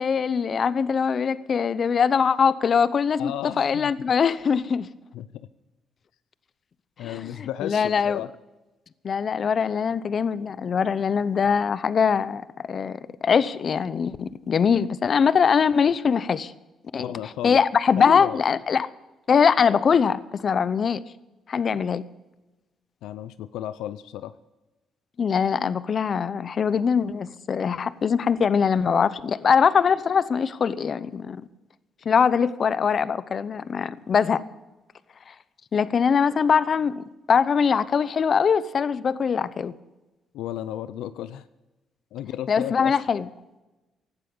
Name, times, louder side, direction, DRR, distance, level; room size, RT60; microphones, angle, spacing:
voice 1, 0.0-4.9 7.0-8.2 9.0-16.5 16.9-17.1 17.4-18.9 19.3-21.0 21.5-22.0 25.2-31.4 32.0-34.4 35.3-35.4 35.7-39.7 42.5-43.3, left 6 dB, 50° left, 0.8 m, -22 dB
voice 2, 3.2-3.9 5.1-5.3 7.0-8.3 17.0-17.6 18.0-18.4 23.0-24.3 40.3-41.5 42.1-42.9, left 12 dB, 90° left, 0.5 m, -33 dB
16.5 x 12.0 x 5.4 m
cardioid pair, 90°, 0 cm